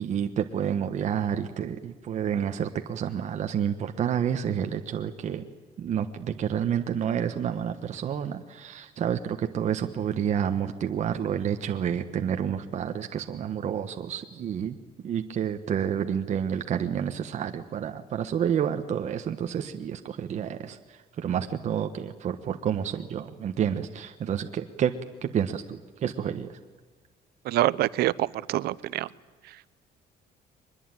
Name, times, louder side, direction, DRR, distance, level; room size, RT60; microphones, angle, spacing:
voice 1, 0.0-5.4 5.8-14.8 15.0-20.8 21.2-24.9 25.2-26.6, right 8 dB, 45° right, 6 dB, 1.3 m, -29 dB
voice 2, 27.4-29.1, right 15 dB, 75° right, 19 dB, 0.8 m, -26 dB
23.5 x 21.0 x 9.2 m, 1.4 s
cardioid pair, 160°, 17 cm